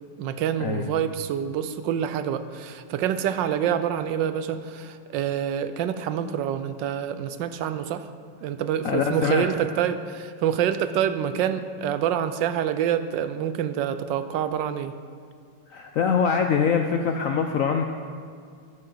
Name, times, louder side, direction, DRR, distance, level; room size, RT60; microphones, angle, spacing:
voice 1, 0.2-8.1 8.4-14.9, right 9 dB, 80° right, 11 dB, 1.3 m, -27 dB
voice 2, 8.8-9.5 15.7-17.8, left 6 dB, 70° left, 5 dB, 0.8 m, -23 dB
13.5 x 11.0 x 3.9 m, 2.2 s
omnidirectional pair, 2.0 m